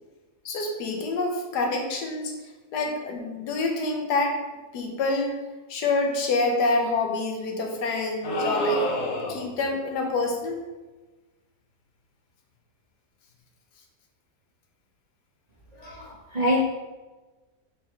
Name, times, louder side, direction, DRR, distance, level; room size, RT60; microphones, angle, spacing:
voice 1, 0.4-2.3 2.7-4.4 4.7-5.3 5.7-8.8 9.3-10.6, left 2 dB, 85° left, 2 dB, 1.5 m, -26 dB
sound 1, 8.2-9.6, left 2 dB, 55° left, 1.2 m, -29 dB
voice 2, 15.7-16.6, left 1 dB, 30° right, -6 dB, 0.9 m, -25 dB
4.7 x 4.7 x 4.4 m, 1.2 s
omnidirectional pair, 1.7 m